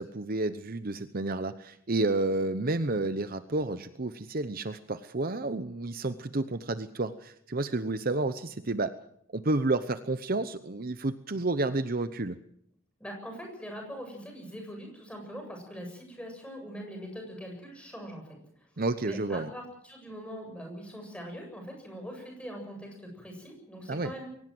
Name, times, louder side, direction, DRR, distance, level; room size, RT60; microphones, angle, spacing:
voice 1, 0.0-9.0 9.3-12.4 18.8-19.5 23.9-24.1, right 2 dB, 45° right, 12 dB, 0.9 m, -30 dB
voice 2, 13.0-18.2 18.6-18.7 19.0-24.3, equal, 5° left, 2 dB, 7.8 m, -42 dB
22.5 x 18.5 x 7.7 m, 0.69 s
head